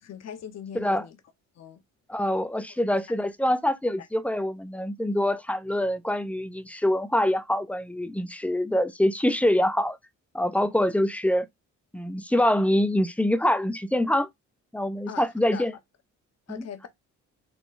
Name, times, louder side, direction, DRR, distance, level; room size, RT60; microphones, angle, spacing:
voice 1, 0.0-1.2 1.6-1.8 3.1-3.2 4.0-4.1 15.1-15.6 16.5-16.9, left 8 dB, 60° left, 1.0 m, -40 dB
voice 2, 2.1-10.0 10.3-11.5 11.9-14.3 14.7-15.7 16.5-16.9, left 1 dB, 5° left, 0.5 m, -25 dB
4.0 x 2.3 x 3.8 m
cardioid pair, 90°, 30 cm